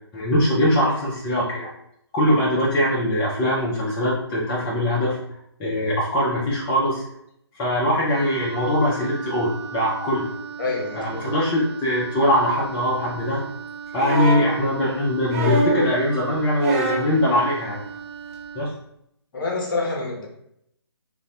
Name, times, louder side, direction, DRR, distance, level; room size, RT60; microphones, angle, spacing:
voice 1, 0.1-1.7 2.1-5.2 5.6-7.0 7.6-10.3 11.0-13.4 13.9-17.8 18.5-18.7, left 1 dB, 15° left, -7 dB, 0.4 m, -22 dB
Wind instrument woodwind instrument, 8.1-18.7, right 6 dB, 75° right, 0.6 m, -37 dB
voice 2, 10.6-11.3 19.3-20.3, left 3 dB, 45° left, -1 dB, 0.9 m, -27 dB
sound 1, 14.0-14.5 15.3-15.9 16.6-17.1 18.3-18.4, right 2 dB, 30° right, 0.8 m, -23 dB
2.5 x 2.5 x 3.3 m, 0.75 s
figure-of-eight pair, 145°, 15 cm